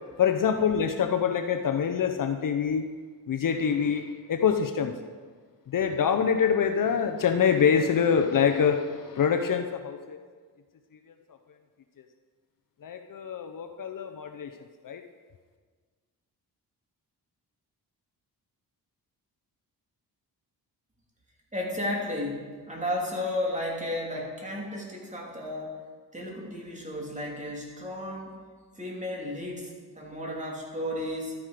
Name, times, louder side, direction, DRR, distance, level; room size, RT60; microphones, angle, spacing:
voice 1, 0.2-2.9 3.3-5.0 5.7-10.2 12.8-14.5 14.8-15.0, left 7 dB, 55° left, 6 dB, 0.8 m, -25 dB
voice 2, 21.5-25.8 26.1-28.4 28.8-31.4, left 1 dB, 20° right, -2 dB, 2.7 m, -33 dB
12.5 x 9.7 x 5.0 m, 1.5 s
wide cardioid pair, 120°, 38 cm